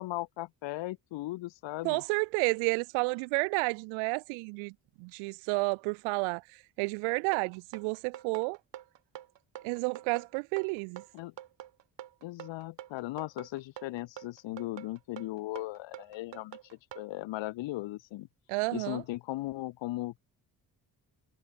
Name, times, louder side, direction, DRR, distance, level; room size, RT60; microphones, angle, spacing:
voice 1, 0.0-2.0 11.1-11.3 12.2-18.3 18.7-20.2, left 17 dB, 65° left, 0.9 m, -37 dB
voice 2, 1.8-4.7 5.0-8.6 9.6-11.0 18.5-19.0, right 33 dB, 80° right, 0.6 m, -31 dB
sound 1, 7.3-17.1, right 11 dB, 65° right, 2.5 m, -46 dB
hypercardioid pair, 45°, 47 cm